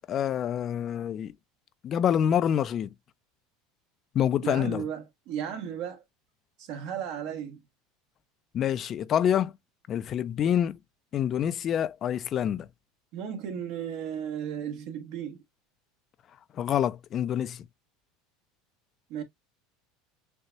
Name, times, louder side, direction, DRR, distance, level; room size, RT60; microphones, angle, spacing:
voice 1, 0.1-1.3 1.8-2.9 4.1-4.8 8.5-9.6 9.9-10.8 11.1-12.7 16.5-17.6, left 9 dB, 40° left, 0.4 m, -27 dB
voice 2, 4.4-6.0 6.6-7.6 13.1-15.4 19.1-19.2, right 8 dB, 65° right, 1.5 m, -35 dB
6.7 x 2.3 x 2.7 m
supercardioid pair, 115°, 0 cm